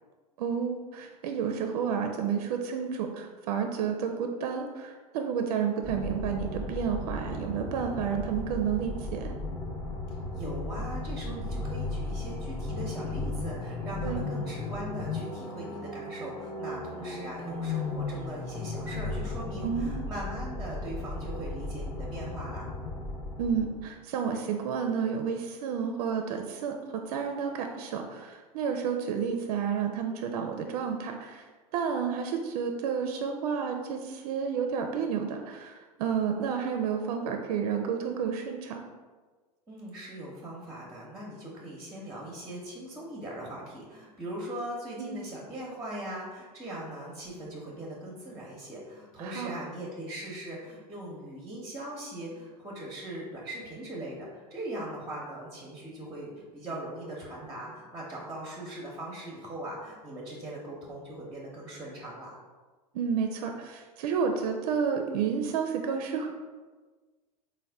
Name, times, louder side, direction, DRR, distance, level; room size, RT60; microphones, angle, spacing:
voice 1, 0.4-9.3 14.0-14.2 19.6-20.1 23.4-31.5 31.7-38.8 45.0-45.2 49.2-49.7 62.9-66.3, right 7 dB, 65° right, 4 dB, 0.4 m, -31 dB
sound 1, 5.8-23.9, left 2 dB, 15° left, 0.5 m, -35 dB
voice 2, 10.3-22.7 39.7-62.4, right 1 dB, 15° right, -4 dB, 0.8 m, -40 dB
4.0 x 2.1 x 3.4 m, 1.4 s
hypercardioid pair, 90°, 20 cm